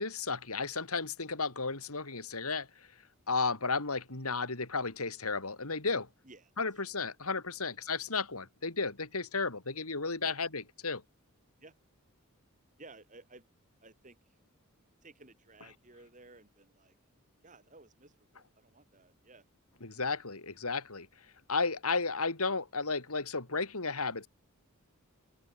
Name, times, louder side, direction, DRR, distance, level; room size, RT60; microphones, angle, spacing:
voice 1, 0.0-2.9 3.3-6.1 6.6-11.0 19.8-24.3, left 4 dB, 85° left, 3.6 m, -34 dB
voice 2, 12.8-13.4 13.8-14.2 15.0-17.0 17.4-19.4, right 3 dB, 35° right, 5.3 m, -56 dB
open air
head